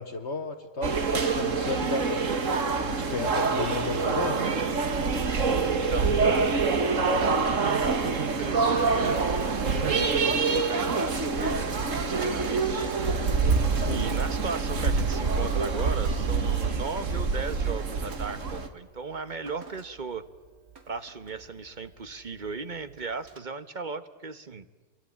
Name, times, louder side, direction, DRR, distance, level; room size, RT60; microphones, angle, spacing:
voice 1, 0.0-2.2 2.8-4.4 13.7-14.1, left 3 dB, 50° left, 8 dB, 1.6 m, -33 dB
sound 1, 0.8-18.7, right 4 dB, 60° right, 2.0 m, -26 dB
voice 2, 5.6-12.9 13.9-20.2 20.9-24.6, right 4 dB, 35° right, 12 dB, 1.3 m, -37 dB
Drip, 7.9-23.4, right 4 dB, 85° right, 2.7 m, -47 dB
28.5 x 23.5 x 8.6 m, 1.2 s
omnidirectional pair, 1.5 m